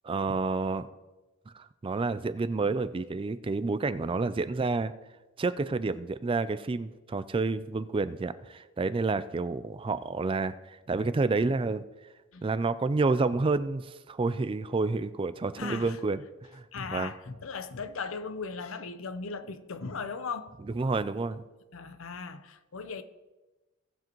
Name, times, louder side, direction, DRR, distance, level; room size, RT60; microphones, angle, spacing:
voice 1, 0.0-0.9 1.5-4.9 5.4-11.8 12.4-16.2 16.5-16.6 16.9-17.1 20.7-21.4, right 3 dB, 25° right, 0.4 m, -29 dB
voice 2, 15.6-16.0 16.7-20.5 21.7-23.0, left 5 dB, 85° left, 0.7 m, -38 dB
17.5 x 7.5 x 3.0 m
head